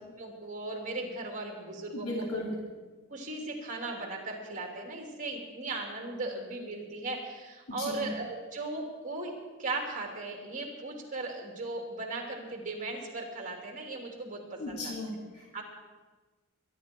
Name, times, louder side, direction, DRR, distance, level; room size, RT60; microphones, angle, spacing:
voice 1, 0.2-2.2 3.1-9.3 9.6-14.9 15.5-15.6, right 2 dB, 35° right, 1 dB, 3.1 m, -37 dB
voice 2, 1.9-2.5 7.7-8.1 14.6-15.6, left 1 dB, 90° left, -2 dB, 3.0 m, -36 dB
23.0 x 11.5 x 4.6 m, 1.3 s
head